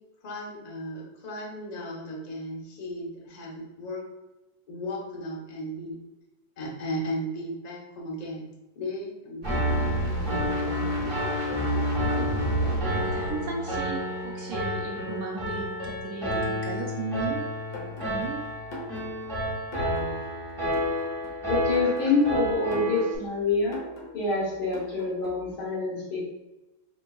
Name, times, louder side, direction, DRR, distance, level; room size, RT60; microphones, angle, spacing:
voice 1, 0.2-4.0 4.7-5.9 6.6-8.5 8.7-9.6, equal, 40° left, -3 dB, 0.6 m, -35 dB
Piano, 9.4-23.1, equal, 15° right, 1.4 m, -29 dB
sound 1, 9.4-14.3 14.8-14.9, equal, 60° right, 0.5 m, -35 dB
voice 2, 12.9-18.5, right 4 dB, 75° right, -1 dB, 0.8 m, -36 dB
sound 2, 17.7-25.5, left 1 dB, 60° left, 1.5 m, -43 dB
voice 3, 21.5-23.8 24.1-26.3, left 3 dB, 80° left, -5 dB, 2.3 m, -26 dB
4.5 x 3.8 x 2.3 m, 1.0 s
omnidirectional pair, 2.2 m